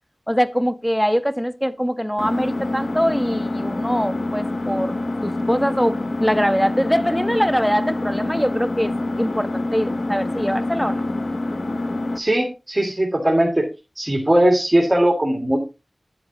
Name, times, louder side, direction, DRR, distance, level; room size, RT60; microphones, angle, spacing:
voice 1, 0.3-4.9 5.2-11.1, equal, 5° left, 0.8 m, -23 dB
Engine, 2.2-12.2, left 2 dB, 70° left, 0.8 m, -26 dB
voice 2, 12.2-13.7 14.0-15.6, right 1 dB, 20° right, 2.2 m, -19 dB
10.0 x 7.8 x 3.0 m
wide cardioid pair, 65°, 0 cm